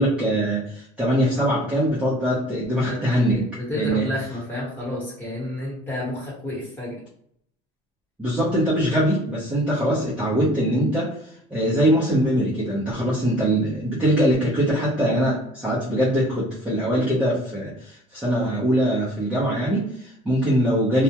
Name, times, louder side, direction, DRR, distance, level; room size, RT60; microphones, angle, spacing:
voice 1, 0.0-3.5 3.7-4.0 8.2-21.0, equal, 5° right, -8 dB, 0.6 m, -22 dB
voice 2, 3.3-7.0, left 1 dB, 10° left, -7 dB, 1.1 m, -30 dB
2.3 x 2.1 x 2.8 m, 0.68 s
cardioid pair, 170°, 18 cm